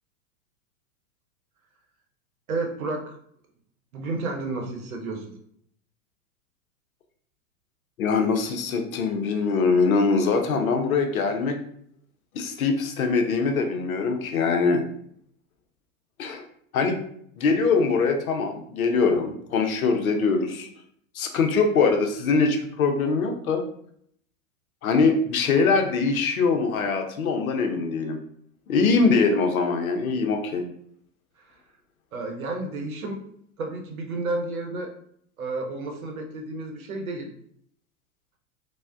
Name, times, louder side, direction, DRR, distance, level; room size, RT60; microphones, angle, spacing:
voice 1, 2.5-3.1 3.9-5.3 31.4-31.6 32.1-33.2 33.6-34.9 35.4-37.3, right 2 dB, 85° right, 3 dB, 0.8 m, -31 dB
voice 2, 8.0-11.6 12.3-14.8 16.2-16.4 16.7-17.0 17.4-20.7 21.1-23.6 24.8-28.2 28.7-30.6, left 4 dB, 85° left, 4 dB, 0.6 m, -23 dB
3.3 x 2.1 x 2.4 m, 0.67 s
hypercardioid pair, 100°, 41 cm